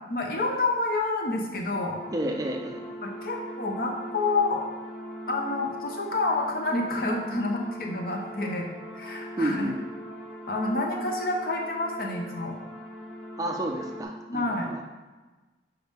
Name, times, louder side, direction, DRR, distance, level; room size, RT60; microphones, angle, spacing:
voice 1, 0.1-2.0 3.0-4.7 5.3-8.7 8.9-9.7 10.5-12.6 14.3-14.7, left 2 dB, 50° left, 1 dB, 0.8 m, -28 dB
sound 1, 1.7-14.0, equal, ahead, 1.1 m, -40 dB
voice 2, 2.1-2.8 9.4-9.8 13.4-14.8, right 1 dB, 20° right, 2 dB, 0.4 m, -30 dB
5.8 x 5.1 x 3.5 m, 1.2 s
head